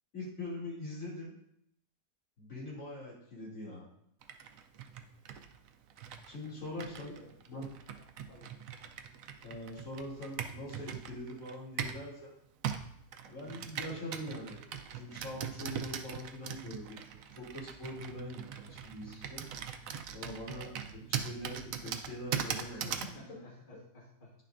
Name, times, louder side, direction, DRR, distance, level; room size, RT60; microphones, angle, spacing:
voice 1, 0.1-1.3 2.4-3.9 6.2-7.2 7.5-7.7 9.4-12.3 13.3-19.7 20.1-22.8, left 1 dB, 55° left, -6 dB, 3.2 m, -43 dB
Computer keyboard, 4.2-12.1 12.6-23.2, right 8 dB, 70° right, 0.9 m, -41 dB
voice 2, 6.7-7.4 8.0-8.5 20.3-20.5 22.6-24.3, left 2 dB, 35° left, -4 dB, 1.4 m, -53 dB
9.7 x 6.5 x 2.5 m, 0.71 s
omnidirectional pair, 1.7 m